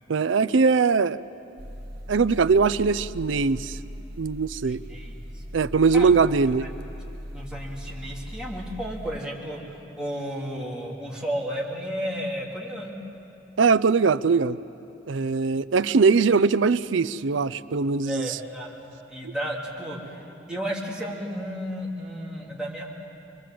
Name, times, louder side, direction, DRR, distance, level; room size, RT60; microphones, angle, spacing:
voice 1, 0.1-1.2 2.1-3.8 4.2-4.8 5.5-6.7 13.6-14.6 15.1-18.4 19.2-19.3, right 5 dB, 70° right, 15 dB, 0.5 m, -21 dB
sound 1, 1.6-9.2, equal, 55° right, 2.0 m, -39 dB
voice 2, 4.7-5.2 5.9-6.1 6.6-6.7 7.3-9.6 9.9-12.9 18.0-18.7 19.1-20.2 20.5-23.0, equal, 5° right, -4 dB, 3.1 m, -33 dB
27.0 x 22.0 x 7.6 m, 2.8 s
head